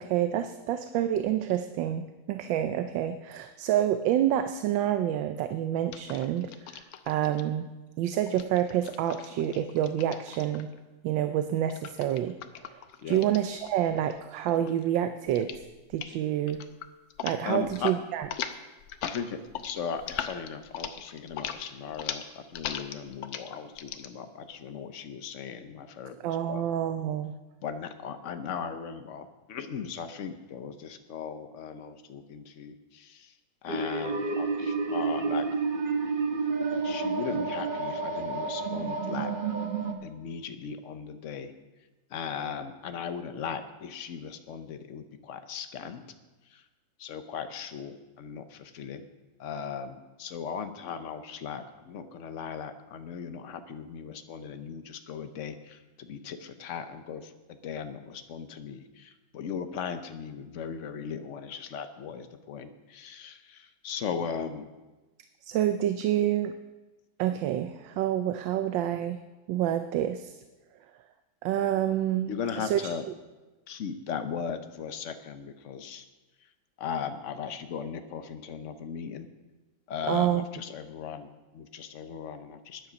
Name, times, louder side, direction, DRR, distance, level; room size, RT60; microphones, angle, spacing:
voice 1, 0.0-7.7 8.0-10.7 11.0-12.3 12.6-12.7 13.1-15.5 15.9-16.6 17.2-18.3 26.2-27.3 65.4-66.5 67.2-69.2 69.5-70.4 71.4-72.8 80.1-80.4, right 11 dB, 80° right, 9 dB, 1.3 m, -28 dB
sound 1, 5.9-7.4 8.3-10.8 11.7-14.2 14.5-14.9 15.3-15.6 15.9-16.2 16.5-17.4 17.6-18.0 18.2-24.1, left 9 dB, 80° left, 1.5 m, -39 dB
voice 2, 17.4-17.9 19.0-26.6 27.6-33.3 33.6-35.4 36.8-39.3 40.0-41.5 42.1-46.0 46.5-46.6 47.0-49.1 49.4-57.3 57.6-64.7 72.3-73.0 73.7-76.1 76.8-79.3 79.9-82.8, left 7 dB, 50° left, 8 dB, 0.9 m, -37 dB
sound 2, 33.7-39.9, right 4 dB, 35° right, 0.9 m, -30 dB
14.0 x 10.0 x 5.1 m, 1.1 s
omnidirectional pair, 2.1 m